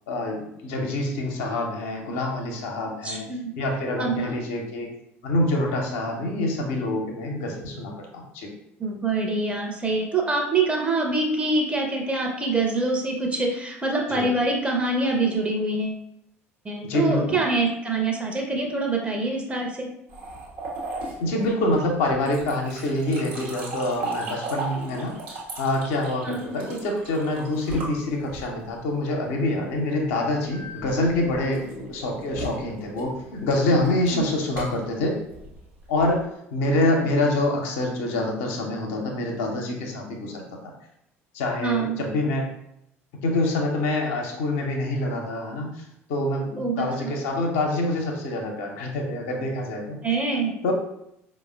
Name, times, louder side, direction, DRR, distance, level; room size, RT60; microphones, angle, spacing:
voice 1, 0.1-3.3 3.6-4.9 5.2-8.5 14.1-14.3 16.8-17.4 21.2-25.1 25.6-35.1 35.9-40.4 41.3-42.5 43.2-45.7 46.1-50.0 50.6-50.7, left 1 dB, 60° left, 0 dB, 0.6 m, -26 dB
voice 2, 3.0-3.5 4.0-4.3 8.8-16.0 16.6-19.9 26.2-26.5 34.1-34.3 41.6-42.0 46.6-47.1 50.0-50.5, right 3 dB, 15° right, 0 dB, 0.7 m, -25 dB
sound 1, 20.1-28.7 30.5-36.2, right 2 dB, 60° right, 1.0 m, -36 dB
4.7 x 2.1 x 2.2 m, 0.78 s
figure-of-eight pair, 60°, 7 cm